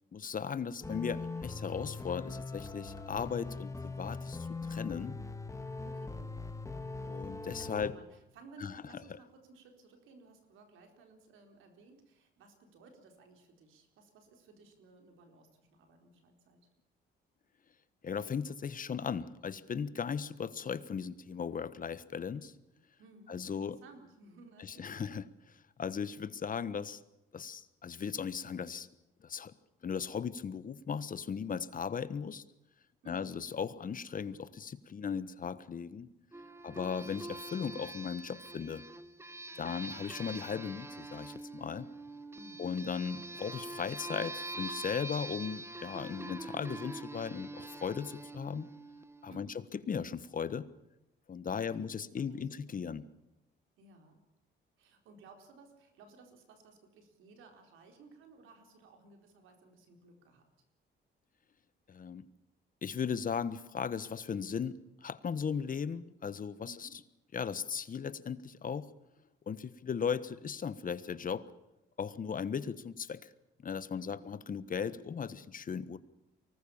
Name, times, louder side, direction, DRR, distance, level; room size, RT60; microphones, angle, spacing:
voice 1, 0.1-5.2 7.0-7.9 8.6-8.8 18.0-22.5 23.3-23.8 24.6-25.2 25.8-27.0 27.3-28.9 29.2-29.5 29.8-32.4 33.1-36.1 36.6-38.9 39.6-41.9 42.6-48.7 49.2-50.7 51.3-53.1 61.9-62.3 62.8-66.9 67.3-68.9 69.5-71.5 72.0-73.3 73.6-76.0, left 6 dB, 45° left, 15 dB, 1.3 m, -37 dB
sound 1, 0.8-7.9, left 3 dB, 15° left, 2.2 m, -41 dB
voice 2, 5.9-6.3 7.6-16.7 23.0-25.1 33.0-33.4 36.6-37.0 39.5-39.9 42.3-42.8 49.3-49.6 51.6-52.9 53.8-54.2 54.8-60.5 66.6-67.0 73.9-74.3, right 3 dB, 90° right, 5 dB, 4.4 m, -58 dB
sound 2, 36.3-49.5, right 2 dB, 10° right, 1.2 m, -45 dB
24.5 x 19.5 x 7.2 m, 0.92 s
cardioid pair, 90°, 20 cm